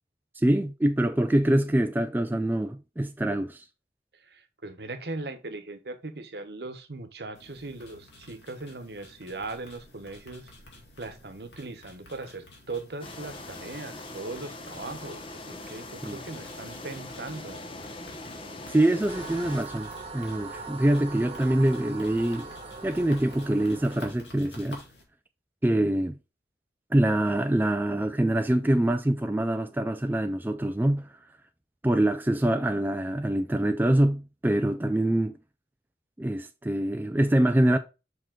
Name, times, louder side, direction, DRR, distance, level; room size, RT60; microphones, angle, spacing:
voice 1, 0.4-3.6 16.0-16.2 18.7-22.5 22.8-24.8 25.6-26.2 26.9-31.1 31.8-35.4 36.2-37.8, right 1 dB, 10° right, 0.3 m, -25 dB
voice 2, 4.2-10.5 11.0-17.6, right 3 dB, 70° right, 1.1 m, -39 dB
sound 1, 7.3-25.0, left 1 dB, 85° left, 2.4 m, -51 dB
sound 2, 13.0-19.6, left 2 dB, 30° left, 0.8 m, -41 dB
sound 3, 19.1-24.1, right 3 dB, 35° right, 1.2 m, -41 dB
5.8 x 5.1 x 3.6 m
head